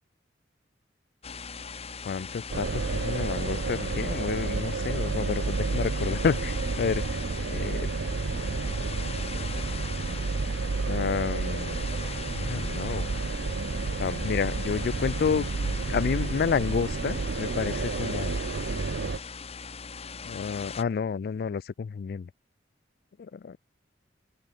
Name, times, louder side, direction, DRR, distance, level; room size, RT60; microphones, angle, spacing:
sound 1, 1.2-20.8, left 5 dB, 35° left, 1.4 m, -40 dB
voice 1, 2.0-7.0 7.5-7.9 10.9-11.8 12.3-13.1 14.0-18.3 20.2-22.3 23.2-23.6, left 6 dB, 55° left, 0.3 m, -30 dB
sound 2, 2.5-19.2, right 4 dB, 70° right, 0.6 m, -31 dB
open air
head